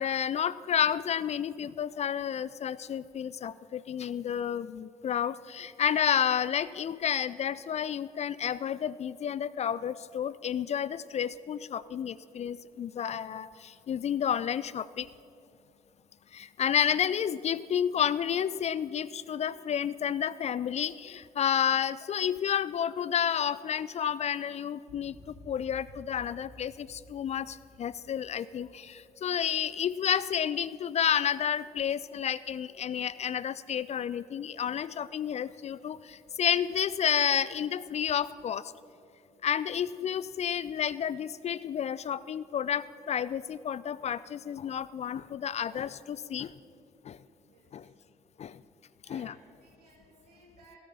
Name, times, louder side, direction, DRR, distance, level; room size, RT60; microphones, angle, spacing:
voice 1, 0.0-15.1 16.3-38.7 39.4-46.5 47.0-47.2 47.7-47.9 48.4-48.6 49.1-49.3, left 8 dB, 35° left, 18 dB, 0.4 m, -30 dB
sound 1, 24.9-30.2, left 1 dB, 60° left, 3.6 m, -54 dB
voice 2, 47.4-47.9 49.0-50.8, right 3 dB, 80° right, -1 dB, 2.1 m, -59 dB
17.0 x 9.4 x 5.6 m, 2.6 s
figure-of-eight pair, 40°, 20 cm